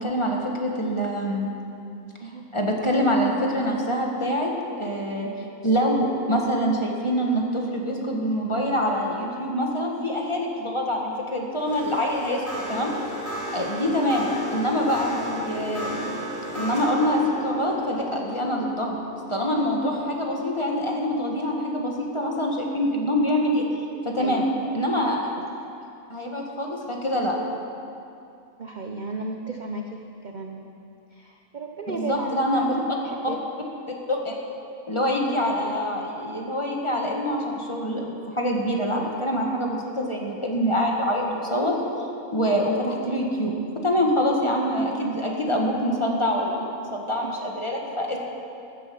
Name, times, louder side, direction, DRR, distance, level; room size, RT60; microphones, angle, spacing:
voice 1, 0.0-1.5 2.5-4.5 4.8-5.3 5.6-12.9 13.5-16.0 16.5-19.0 19.3-23.6 24.1-24.4 24.7-25.3 26.1-27.4 31.9-32.7 34.1-34.3 34.9-41.8 42.3-48.2, equal, 20° left, -1 dB, 1.7 m, -25 dB
sound 1, 11.5-20.9, equal, 10° right, 4.0 m, -35 dB
voice 2, 28.6-30.8 31.1-32.8 33.0-33.4, right 3 dB, 40° right, 2 dB, 0.7 m, -34 dB
14.5 x 10.5 x 7.0 m, 2.6 s
omnidirectional pair, 1.5 m